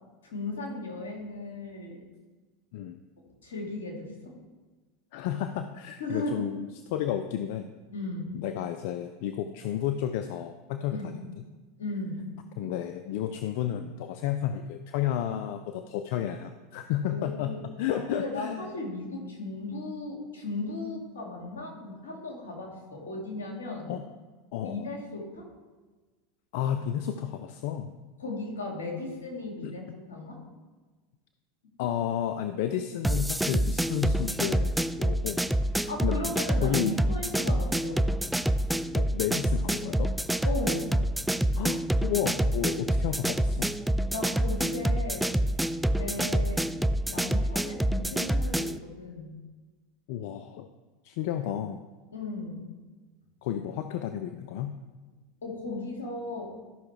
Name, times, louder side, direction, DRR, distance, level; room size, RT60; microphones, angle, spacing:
voice 1, 0.2-2.0 3.4-4.3 6.0-6.5 7.9-8.3 10.9-11.2 11.8-12.3 17.1-17.6 17.9-23.9 24.6-25.5 28.2-30.4 35.9-38.0 40.4-41.0 44.1-45.3 46.0-46.6 47.0-49.3 52.1-52.7 55.4-56.5, left 2 dB, 85° left, -1 dB, 2.3 m, -36 dB
voice 2, 5.1-7.7 8.3-11.0 12.6-18.6 23.9-24.0 24.5-24.9 26.5-27.9 29.6-29.7 31.8-35.4 36.0-36.2 36.6-36.9 38.9-40.1 41.6-43.7 50.1-50.7 51.0-51.8 53.4-54.8, left 10 dB, 65° left, 8 dB, 0.5 m, -32 dB
sound 1, 33.0-48.8, right 1 dB, 5° right, 0.3 m, -27 dB
13.0 x 5.7 x 3.3 m, 1.3 s
hypercardioid pair, 90°, 0 cm